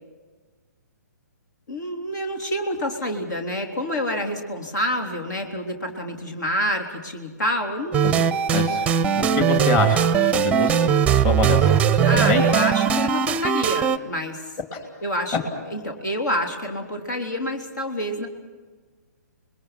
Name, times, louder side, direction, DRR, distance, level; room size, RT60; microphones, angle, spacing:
voice 1, 1.7-8.3 12.0-14.5 15.0-18.3, equal, 75° left, 4 dB, 3.5 m, -28 dB
sound 1, 7.9-14.0, right 8 dB, 10° right, 0.6 m, -20 dB
voice 2, 8.5-8.8 9.1-12.4 14.7-14.8, left 4 dB, 30° left, 4 dB, 2.8 m, -26 dB
29.0 x 21.5 x 5.8 m, 1.4 s
hypercardioid pair, 140°, 9 cm